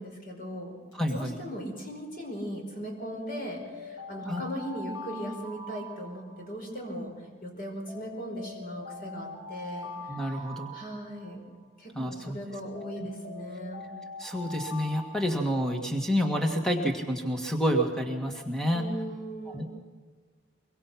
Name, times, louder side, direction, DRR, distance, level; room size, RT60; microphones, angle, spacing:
voice 1, 0.0-7.1 7.4-9.9 10.2-10.4 10.7-11.4 11.8-13.9 18.7-19.7, equal, 45° left, 2 dB, 5.3 m, -38 dB
Alarm, 0.9-1.3 3.0-6.8 7.9-11.6 12.7-16.0, left 2 dB, 70° left, 7.2 m, -43 dB
voice 2, 0.9-1.4 4.3-4.4 10.1-10.7 12.0-12.4 14.2-18.9 19.5-19.7, equal, 5° left, 3 dB, 1.8 m, -29 dB
24.0 x 24.0 x 5.9 m, 1.5 s
head